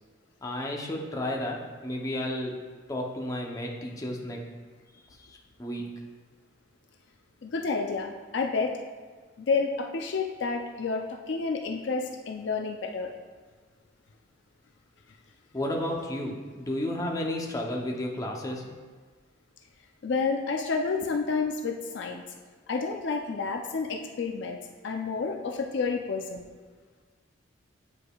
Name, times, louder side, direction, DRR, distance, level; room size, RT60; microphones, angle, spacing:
voice 1, 0.4-2.5 2.9-4.4 5.2-5.3 5.6-5.8 15.5-18.7, left 1 dB, 15° left, -1 dB, 0.7 m, -32 dB
voice 2, 7.4-8.8 9.4-13.1 20.0-22.2 22.7-24.6 24.8-26.5, left 4 dB, 60° left, 2 dB, 0.4 m, -30 dB
8.6 x 4.8 x 2.3 m, 1.5 s
head